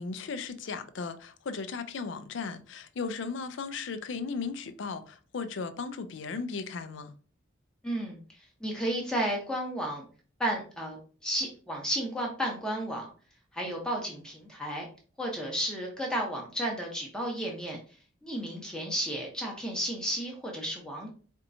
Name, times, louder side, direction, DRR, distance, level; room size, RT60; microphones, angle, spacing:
voice 1, 0.0-7.1, left 4 dB, 70° left, 0.4 m, -36 dB
voice 2, 7.8-10.1 10.4-13.1 13.5-14.9 15.2-17.8 18.2-21.1, right 1 dB, 5° left, 0.7 m, -33 dB
4.4 x 2.8 x 2.6 m
head